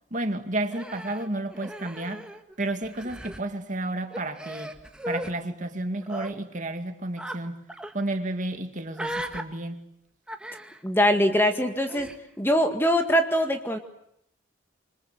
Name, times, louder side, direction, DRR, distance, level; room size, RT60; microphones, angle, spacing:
voice 1, 0.1-2.3 2.6-4.7 5.1-7.6 7.9-9.9, right 2 dB, 40° right, 2.3 m, -31 dB
Human voice, 0.7-2.5 2.8-3.4 4.1-5.3 6.0-6.3 7.2-7.4 7.7-7.9 8.9-9.4 10.3-10.8 11.9-12.2, equal, 5° right, 1.7 m, -37 dB
voice 2, 10.8-12.1 12.4-13.8, equal, 10° left, 1.9 m, -22 dB
28.0 x 25.0 x 7.9 m
head